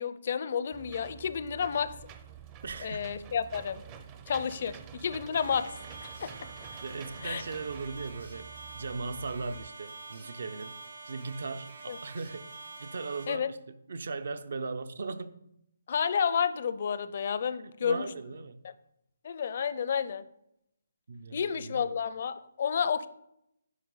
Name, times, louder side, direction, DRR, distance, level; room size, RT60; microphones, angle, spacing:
voice 1, 0.0-1.9 2.8-3.8 4.3-5.7 6.2-6.3 7.2-7.4 11.9-12.0 13.3-13.5 15.9-18.1 19.2-20.3 21.3-23.1, left 7 dB, 45° left, 0.5 m, -30 dB
Engine / Mechanisms, 0.7-9.7, right 8 dB, 20° right, 0.5 m, -48 dB
voice 2, 2.6-3.1 6.8-10.8 11.0-12.5 12.8-15.4 17.8-18.6 21.1-22.0, right 4 dB, 65° right, 0.6 m, -38 dB
sound 1, 5.3-13.2, right 3 dB, 85° right, 3.1 m, -47 dB
9.5 x 5.4 x 3.9 m
hypercardioid pair, 160°, 0 cm